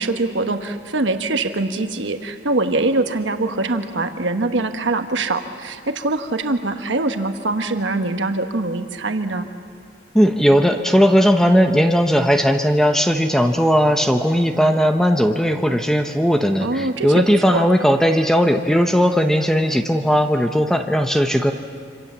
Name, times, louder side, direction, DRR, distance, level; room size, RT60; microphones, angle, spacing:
voice 1, 0.0-9.5 16.6-17.2 17.5-17.6, right 2 dB, 75° right, 6 dB, 1.2 m, -23 dB
voice 2, 10.1-21.5, equal, 5° left, 5 dB, 0.9 m, -17 dB
26.5 x 26.0 x 7.3 m, 2.1 s
head